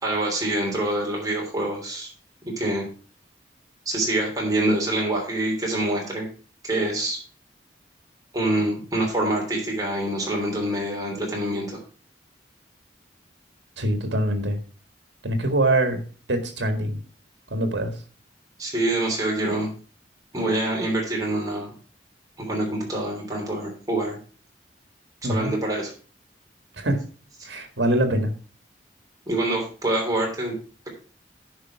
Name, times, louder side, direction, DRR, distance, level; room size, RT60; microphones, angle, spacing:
voice 1, 0.0-2.1 2.6-2.9 3.8-6.3 6.6-7.2 8.3-11.8 18.6-19.7 20.3-21.7 22.4-24.2 25.2-25.9 29.3-30.5, right 1 dB, 20° right, -1 dB, 3.2 m, -25 dB
voice 2, 13.8-14.6 15.2-16.0 16.3-17.0 17.5-17.9 25.2-25.5 26.8-27.0 27.4-28.3, right 1 dB, 75° right, 7 dB, 1.8 m, -23 dB
10.5 x 5.3 x 4.7 m, 0.38 s
head